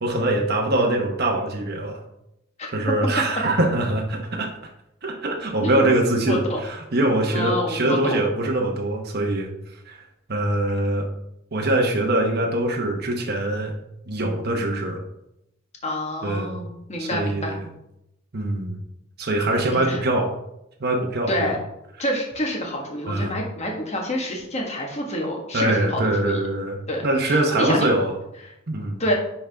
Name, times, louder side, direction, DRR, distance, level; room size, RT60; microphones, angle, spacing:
voice 1, 0.0-2.0 2.7-4.5 5.0-9.5 9.9-10.0 10.3-11.1 11.5-13.7 14.1-15.0 16.2-16.6 17.0-17.7 18.3-18.8 19.2-20.3 20.8-21.5 23.1-23.4 25.5-28.2 28.7-29.0, right 1 dB, 55° right, 1 dB, 1.1 m, -23 dB
voice 2, 6.3-6.6 7.3-8.2 15.8-17.6 19.7-20.0 21.3-21.6 22.0-26.4 26.9-27.9 29.0-29.1, equal, 35° left, 0 dB, 1.5 m, -27 dB
10.0 x 3.9 x 3.5 m, 0.82 s
head